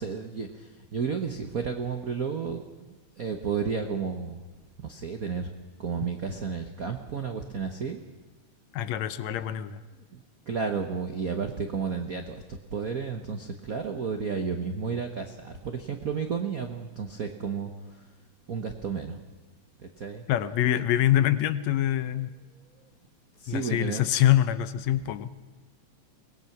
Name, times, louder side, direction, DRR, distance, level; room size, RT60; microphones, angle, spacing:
voice 1, 0.0-4.4 4.8-5.5 5.8-8.0 10.1-18.0 18.5-19.2 20.0-20.2 22.6-22.8 23.4-24.0, right 6 dB, 80° right, 5 dB, 0.8 m, -32 dB
voice 2, 8.7-9.8 20.3-22.3 23.5-25.3, left 12 dB, 75° left, 13 dB, 2.0 m, -25 dB
24.5 x 18.5 x 5.9 m, 1.3 s
omnidirectional pair, 3.3 m